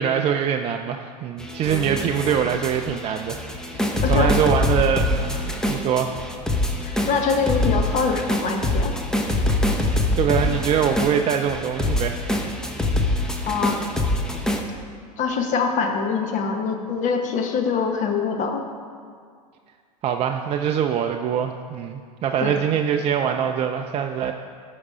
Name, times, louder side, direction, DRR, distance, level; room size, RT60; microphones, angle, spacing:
voice 1, 0.0-3.4 3.7-5.4 5.7-6.1 10.1-12.3 20.0-24.3, right 8 dB, 30° right, 4 dB, 0.4 m, -23 dB
sound 1, 1.4-14.6, left 1 dB, 5° left, 0.8 m, -24 dB
voice 2, 4.0-4.3 6.8-8.9 13.2-13.8 15.2-18.6 22.4-22.6, left 5 dB, 35° left, 4 dB, 1.2 m, -24 dB
12.5 x 5.1 x 4.9 m, 2.1 s
hypercardioid pair, 105°, 21 cm